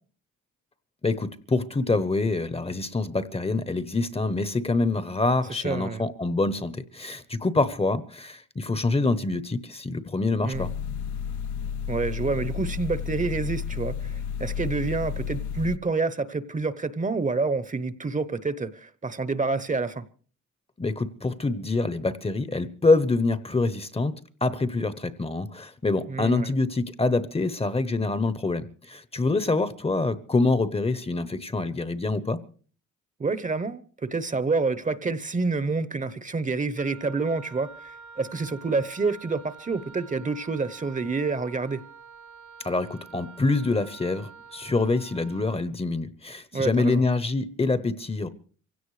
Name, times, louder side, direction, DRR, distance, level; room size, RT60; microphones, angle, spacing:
voice 1, 1.0-10.7 20.8-24.1 24.4-32.4 42.6-48.3, left 3 dB, 20° left, 0.9 m, -26 dB
voice 2, 5.5-6.1 10.4-10.7 11.9-20.0 26.1-26.5 33.2-41.8 46.5-47.0, right 4 dB, 25° right, 0.9 m, -28 dB
sound 1, 10.5-15.8, left 7 dB, 75° left, 0.7 m, -32 dB
Wind instrument woodwind instrument, 36.8-45.6, right 5 dB, 85° right, 3.6 m, -47 dB
25.0 x 16.5 x 3.2 m
cardioid pair, 90°, 30 cm